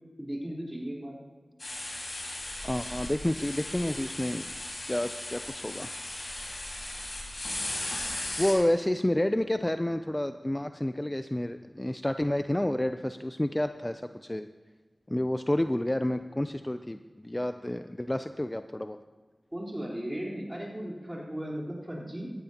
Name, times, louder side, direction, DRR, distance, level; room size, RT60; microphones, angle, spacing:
voice 1, 0.2-1.2 19.5-22.3, equal, 20° right, -3 dB, 4.1 m, -36 dB
sound 1, 1.6-8.5, left 1 dB, 60° left, 4.9 m, -37 dB
voice 2, 2.6-4.5 4.9-5.9 8.4-14.5 15.1-19.0, left 1 dB, 20° left, 9 dB, 0.5 m, -29 dB
17.5 x 14.0 x 2.9 m, 1.4 s
wide cardioid pair, 45°, 0 cm